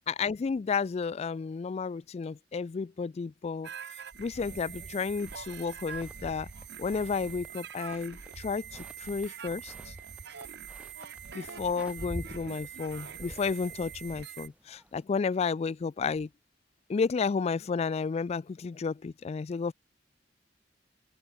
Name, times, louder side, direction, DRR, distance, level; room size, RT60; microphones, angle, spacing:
voice 1, 0.1-3.7 4.2-6.5 6.8-9.9 11.3-16.3 16.9-19.7, left 5 dB, 35° left, 0.3 m, -32 dB
sound 1, 3.6-14.5, right 7 dB, 65° right, 1.2 m, -44 dB
sound 2, 5.2-15.0, equal, 5° right, 1.1 m, -49 dB
open air
head